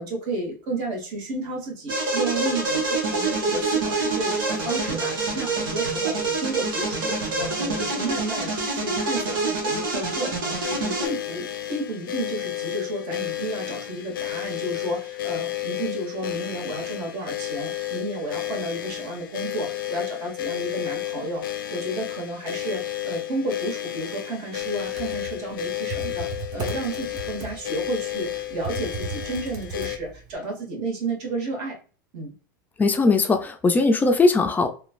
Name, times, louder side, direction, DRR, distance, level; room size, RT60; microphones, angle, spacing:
voice 1, 0.0-21.4 21.7-31.8 32.1-32.3, right 2 dB, 55° right, -1 dB, 1.4 m, -32 dB
sound 1, 1.9-11.1, right 3 dB, 85° right, 1.0 m, -26 dB
sound 2, 10.6-30.0, left 14 dB, 85° left, 0.4 m, -32 dB
Computer keyboard, 24.7-30.3, right 4 dB, 35° right, 0.8 m, -36 dB
voice 2, 32.8-34.7, left 3 dB, 15° left, 7 dB, 0.4 m, -19 dB
3.0 x 2.3 x 2.4 m, 0.39 s
hypercardioid pair, 115°, 11 cm